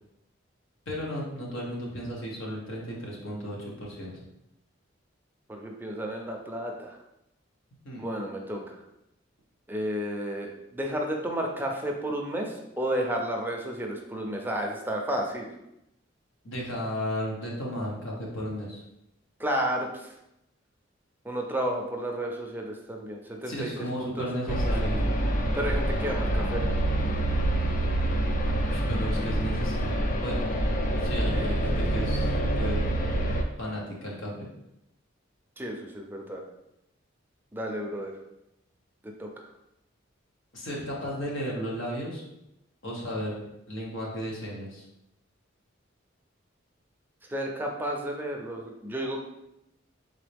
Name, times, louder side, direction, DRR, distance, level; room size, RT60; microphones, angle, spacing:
voice 1, 0.9-4.2 7.8-8.0 16.4-18.8 23.5-25.0 28.6-30.4 30.9-32.8 33.6-34.5 40.5-42.2 42.8-43.4 43.7-44.8, equal, 80° left, -3 dB, 1.3 m, -34 dB
voice 2, 5.5-7.0 8.0-8.8 9.7-15.5 19.4-20.1 21.2-24.3 25.5-26.6 31.3-31.6 31.9-32.1 35.6-36.4 37.5-38.1 39.0-39.3 47.3-49.2, right 1 dB, 10° right, 1 dB, 0.5 m, -32 dB
sound 1, 24.5-33.4, right 1 dB, 45° left, 0.5 m, -26 dB
3.9 x 3.9 x 3.4 m, 0.86 s
head